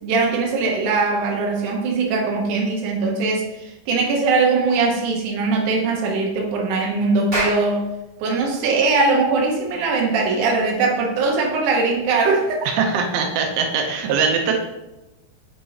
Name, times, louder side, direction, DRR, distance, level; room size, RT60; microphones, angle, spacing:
voice 1, 0.0-7.8 8.2-12.7, right 3 dB, 65° right, -1 dB, 2.3 m, -21 dB
Clapping, 7.3-12.0, right 1 dB, 25° right, 2.1 m, -33 dB
voice 2, 12.7-14.5, right 5 dB, 85° right, 3 dB, 2.5 m, -21 dB
8.6 x 4.6 x 2.8 m, 1.0 s
omnidirectional pair, 4.3 m